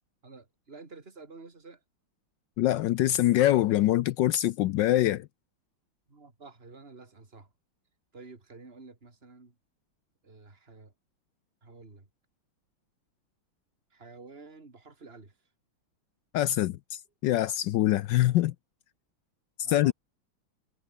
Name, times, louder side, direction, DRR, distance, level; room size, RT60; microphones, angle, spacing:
voice 1, 0.2-1.8 6.1-7.5 8.1-9.5 10.2-10.9 11.6-12.1 13.9-15.3 19.6-19.9, right 3 dB, 25° right, 3.4 m, -50 dB
voice 2, 2.6-5.3 16.3-18.5 19.7-19.9, left 14 dB, 75° left, 1.1 m, -24 dB
omnidirectional pair, 2.3 m